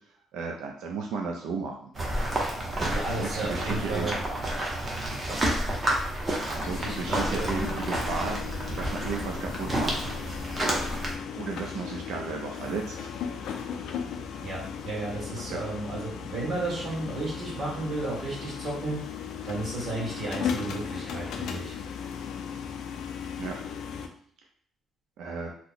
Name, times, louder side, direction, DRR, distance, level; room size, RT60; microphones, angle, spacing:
voice 1, 0.3-1.9 3.2-4.1 6.5-8.4 8.8-9.9 11.4-13.1 15.4-15.6 23.4-23.6 25.2-25.5, right 4 dB, 90° right, 2 dB, 0.4 m, -34 dB
sound 1, 2.0-11.1, right 1 dB, 25° right, 0.6 m, -30 dB
voice 2, 2.9-4.2 6.8-7.5 14.4-19.0 19.4-21.7, right 2 dB, 40° right, -6 dB, 1.4 m, -33 dB
sound 2, 6.6-24.1, left 7 dB, 70° left, 0.4 m, -37 dB
2.9 x 2.0 x 3.9 m, 0.62 s
cardioid pair, 180°, 0 cm